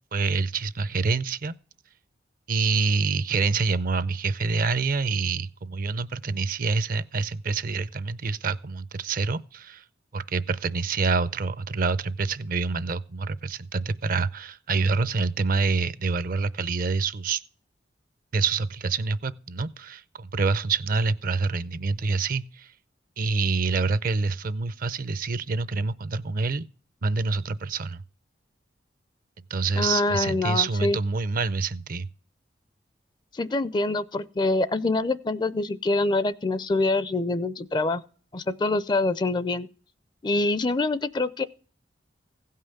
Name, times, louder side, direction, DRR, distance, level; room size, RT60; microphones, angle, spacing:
voice 1, 0.1-1.6 2.5-9.8 10.1-17.4 18.3-22.7 23.2-26.6 27.0-28.0 29.5-32.1, right 4 dB, 50° right, 0.5 m, -26 dB
voice 2, 29.8-31.0 33.3-38.0 38.3-39.7 40.2-41.4, left 2 dB, 25° left, 0.4 m, -25 dB
16.0 x 5.6 x 6.5 m
head